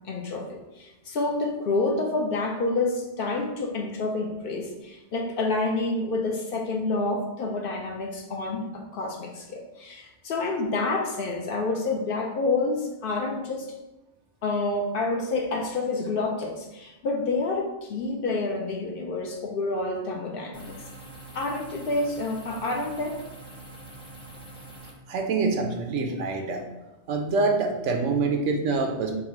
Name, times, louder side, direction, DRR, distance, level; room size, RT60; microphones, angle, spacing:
voice 1, 0.1-13.7 14.4-20.8 21.3-23.2, left 3 dB, 60° left, 1 dB, 0.7 m, -28 dB
sound 1, 20.5-24.9, right 2 dB, 5° left, 0.5 m, -44 dB
voice 2, 25.1-26.6 27.1-29.2, right 3 dB, 85° right, 4 dB, 1.0 m, -25 dB
3.9 x 2.4 x 4.2 m, 1.0 s
omnidirectional pair, 1.2 m